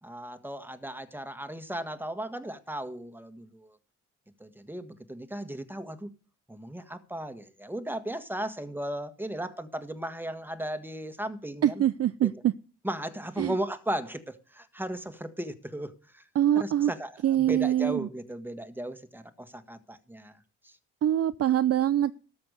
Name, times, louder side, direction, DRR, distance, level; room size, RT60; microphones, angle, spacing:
voice 1, 0.0-3.8 4.4-6.1 6.5-11.8 12.2-12.3 12.8-16.2 16.5-17.1 17.4-20.3 20.6-20.8, right 1 dB, 5° right, 1.6 m, -36 dB
voice 2, 11.6-12.5 13.4-13.6 16.3-16.9 17.2-18.1 21.0-22.1, right 11 dB, 45° right, 0.5 m, -24 dB
13.5 x 6.0 x 6.7 m
hypercardioid pair, 45°, 35 cm